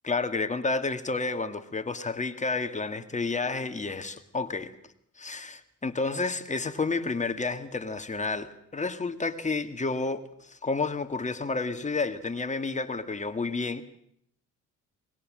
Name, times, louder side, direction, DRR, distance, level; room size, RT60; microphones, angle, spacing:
voice 1, 0.0-4.7 5.2-13.8, left 3 dB, 25° left, 8 dB, 2.0 m, -30 dB
23.5 x 21.0 x 7.6 m, 0.70 s
cardioid pair, 90°, 30 cm